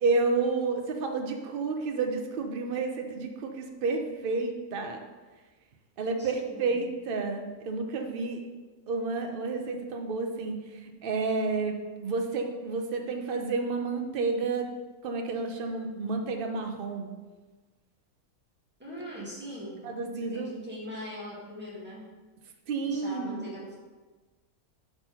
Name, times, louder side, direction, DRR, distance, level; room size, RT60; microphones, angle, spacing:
voice 1, 0.0-5.0 6.0-8.4 8.9-10.6 11.0-11.7 12.0-14.7 15.0-17.1 19.8-20.5 22.7-23.4, right 4 dB, 50° right, 4 dB, 0.7 m, -30 dB
voice 2, 6.1-6.8 18.8-19.9 20.1-22.1 22.8-23.7, equal, 5° right, -7 dB, 1.7 m, -41 dB
4.7 x 4.1 x 5.7 m, 1.3 s
omnidirectional pair, 1.6 m